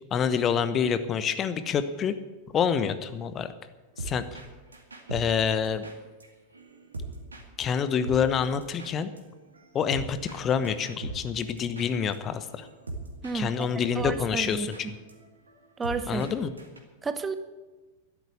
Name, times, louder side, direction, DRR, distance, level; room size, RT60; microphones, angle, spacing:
voice 1, 0.1-2.2 2.5-3.5 4.0-4.4 5.1-5.8 7.6-9.1 9.7-12.7 13.3-14.8 16.1-16.5, left 7 dB, 25° left, 12 dB, 0.9 m, -27 dB
sound 1, 4.0-4.5 4.7-7.4 7.7-7.8 8.0-12.2 12.5-13.4 13.6-13.7 14.0-16.3 16.6-16.8, right 2 dB, 75° right, 2.2 m, -40 dB
voice 2, 13.2-13.7 13.9-14.7 15.8-16.3 17.0-17.3, right 4 dB, 15° right, 11 dB, 0.9 m, -31 dB
12.5 x 11.0 x 8.3 m, 1.2 s
figure-of-eight pair, 90°, 0 cm